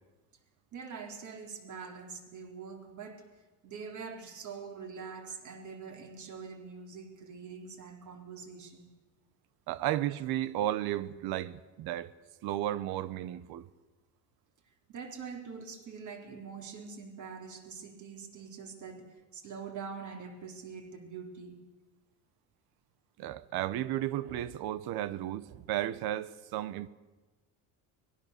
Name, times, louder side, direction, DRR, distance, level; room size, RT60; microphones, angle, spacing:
voice 1, 0.7-3.3 3.6-8.9 14.9-21.6, right 5 dB, 50° right, 4.0 m, -44 dB
voice 2, 9.7-12.1 12.4-13.7 23.2-26.9, right 13 dB, 75° right, 1.1 m, -33 dB
24.0 x 20.0 x 6.8 m
cardioid pair, 130°, 38 cm